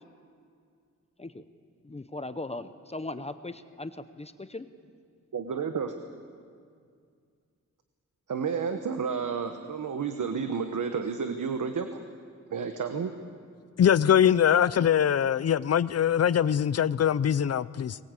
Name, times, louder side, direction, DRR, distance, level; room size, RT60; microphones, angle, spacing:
voice 1, 1.8-4.7, left 2 dB, 20° left, 11 dB, 0.7 m, -38 dB
voice 2, 5.3-5.9 8.3-12.0 12.5-13.1, right 6 dB, 80° right, 7 dB, 1.2 m, -31 dB
voice 3, 13.8-18.0, left 9 dB, 55° left, 18 dB, 0.5 m, -22 dB
23.0 x 20.5 x 8.3 m, 2.2 s
wide cardioid pair, 155°, 30 cm